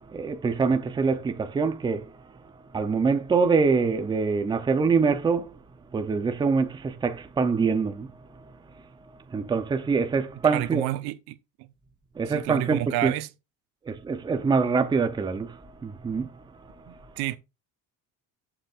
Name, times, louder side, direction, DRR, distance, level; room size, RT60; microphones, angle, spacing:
voice 1, 0.1-2.1 2.7-5.5 5.9-8.4 9.3-10.8 12.2-13.1 13.9-16.4, right 5 dB, 10° right, 0.6 m, -25 dB
voice 2, 10.4-11.7 12.3-13.3 16.9-17.4, right 15 dB, 90° right, 0.9 m, -30 dB
11.5 x 6.6 x 2.4 m
cardioid pair, 175°, 37 cm